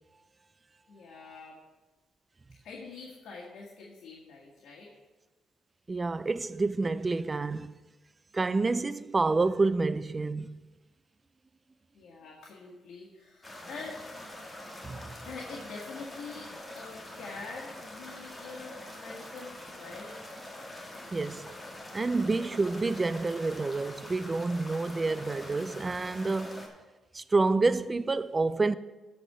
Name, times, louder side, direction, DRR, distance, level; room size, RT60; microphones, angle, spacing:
voice 1, 0.9-1.6 2.6-4.9 11.9-14.3 15.2-20.1, left 4 dB, 70° left, 1.7 m, -45 dB
voice 2, 5.9-7.8 8.3-10.6 14.8-15.1 21.1-21.5 21.9-26.6 27.1-28.8, right 3 dB, 25° right, 0.4 m, -28 dB
sound 1, 13.4-26.7, left 1 dB, 20° left, 1.8 m, -45 dB
12.0 x 4.3 x 6.7 m
cardioid pair, 90°, 0 cm